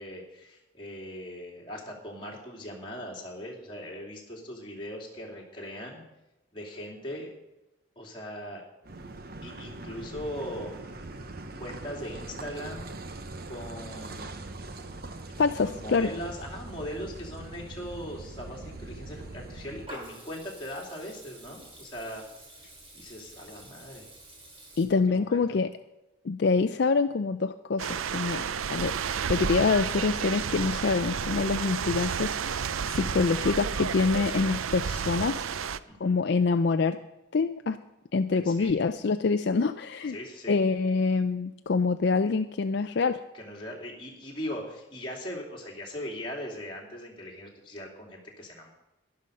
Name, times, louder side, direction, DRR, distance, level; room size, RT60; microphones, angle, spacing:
voice 1, 0.0-6.0 6.5-7.3 8.0-8.6 9.4-10.7 11.6-12.9 13.5-14.5 15.6-22.2 22.9-24.1 25.1-25.4 28.3-28.5 35.5-36.2 38.3-38.7 40.1-40.6 43.3-48.7, equal, 25° left, -2 dB, 2.9 m, -40 dB
Car passing by / Idling / Accelerating revving vroom, 8.8-19.9, right 2 dB, 50° right, 0.9 m, -42 dB
voice 2, 15.4-16.1 24.8-25.7 26.2-28.4 28.7-35.4 36.0-37.0 37.3-37.8 38.1-40.2 40.5-43.2, left 4 dB, 55° left, 9 dB, 0.4 m, -26 dB
Water tap faucet / Liquid, 19.1-24.8, right 1 dB, 30° right, 2.7 m, -49 dB
sound 1, 27.8-35.8, right 7 dB, 85° right, 0.5 m, -31 dB
12.0 x 11.5 x 5.3 m, 0.99 s
head